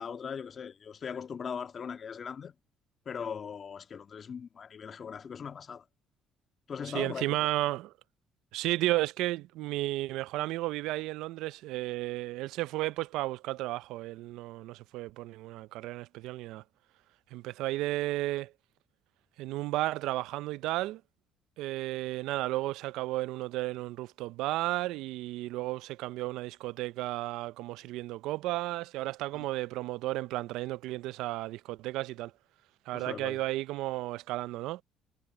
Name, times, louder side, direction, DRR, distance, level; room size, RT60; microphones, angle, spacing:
voice 1, 0.0-2.5 3.1-5.8 6.7-7.5 29.3-29.5 32.9-33.4, left 6 dB, 45° left, 1.7 m, -39 dB
voice 2, 6.9-7.9 8.5-16.6 17.3-18.5 19.4-21.0 21.6-32.3 32.9-34.8, right 17 dB, 80° right, 0.4 m, -33 dB
supercardioid pair, 80°, 0 cm